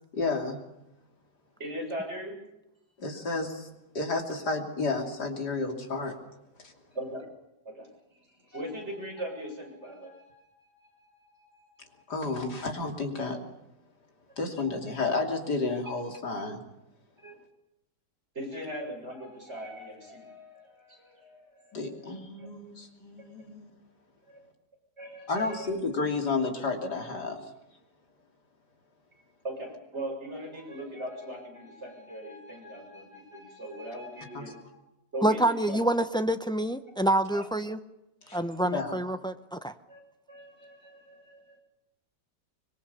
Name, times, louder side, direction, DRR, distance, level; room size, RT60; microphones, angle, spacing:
voice 1, 0.1-0.6 3.0-3.7 4.0-6.2 6.6-6.7 12.1-13.4 14.4-16.6 21.7-23.7 25.3-27.4 34.3-34.4 38.3-38.4 38.6-38.9, left 3 dB, 70° left, 3 dB, 3.6 m, -31 dB
voice 2, 1.6-2.4 6.9-7.3 7.6-7.9 8.4-12.1 17.2-17.3 18.3-22.5 24.3-24.4 25.0-25.7 29.4-34.6 35.1-35.4 35.7-35.8 37.3-37.4 38.3-38.6 39.9-40.0 40.3-41.6, equal, 40° right, 0 dB, 7.6 m, -40 dB
voice 3, 35.2-37.8 38.3-39.7, right 1 dB, 5° left, 9 dB, 0.3 m, -27 dB
25.0 x 22.0 x 7.0 m, 0.89 s
omnidirectional pair, 1.8 m